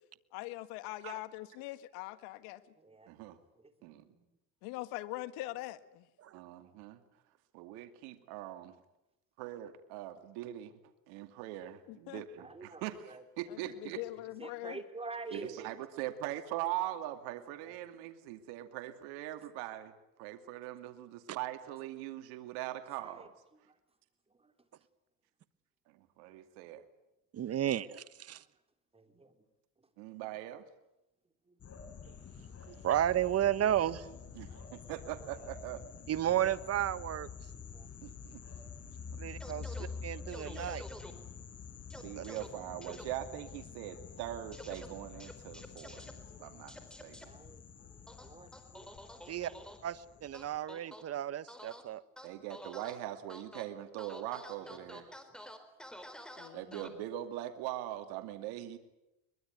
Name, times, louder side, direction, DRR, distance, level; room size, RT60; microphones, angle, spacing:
voice 1, 0.3-2.6 4.6-6.1 11.9-12.2 13.5-14.8 56.4-57.0, left 17 dB, 80° left, 13 dB, 1.9 m, -42 dB
voice 2, 3.1-3.4 3.8-4.1 6.3-7.0 7.5-8.7 9.4-10.7 11.1-14.0 15.3-19.9 20.2-23.3 25.9-26.8 30.0-30.6 34.3-35.8 38.0-38.4 41.9-47.3 52.2-55.1 56.5-58.8, right 13 dB, 80° right, 8 dB, 2.4 m, -41 dB
voice 3, 12.4-13.2 14.4-15.7 17.7-17.8 23.0-23.3 28.9-29.3 37.7-37.9 47.3-47.6 48.2-48.9 54.7-55.0, right 3 dB, 15° right, 7 dB, 3.6 m, -47 dB
voice 4, 27.3-28.4 32.7-34.0 36.1-37.3 39.2-40.8 42.1-42.2 49.3-49.5 49.8-52.0, right 11 dB, 40° right, 15 dB, 1.3 m, -33 dB
sound 1, 31.6-50.6, left 5 dB, 40° left, 4.5 m, -48 dB
sound 2, 39.4-39.9 40.3-41.1 41.9-42.5 42.8-43.0 44.5-44.9 45.2-46.1 46.7-47.3 48.1-49.8 50.3-51.0 51.5-51.8 52.2-53.0 53.3-53.6 54.0-56.9, equal, ahead, 4.2 m, -49 dB
23.0 x 22.0 x 9.4 m, 0.89 s
supercardioid pair, 105°, 38 cm